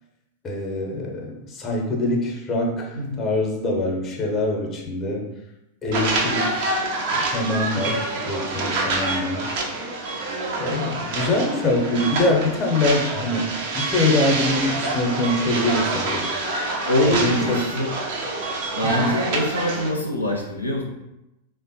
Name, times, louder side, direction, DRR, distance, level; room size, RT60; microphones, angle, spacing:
voice 1, 0.4-5.2 5.8-6.7 7.1-9.5 10.6-13.5 13.7-16.3 17.0-17.6 18.8-19.2, left 2 dB, 25° left, 0 dB, 0.7 m, -24 dB
voice 2, 2.9-3.3 7.7-8.0 16.9-17.9 18.7-20.8, left 1 dB, 85° left, -2 dB, 0.5 m, -24 dB
sound 1, 5.9-19.9, right 2 dB, 50° right, 0.5 m, -26 dB
3.3 x 2.0 x 2.7 m, 0.91 s
figure-of-eight pair, 90°, 0 cm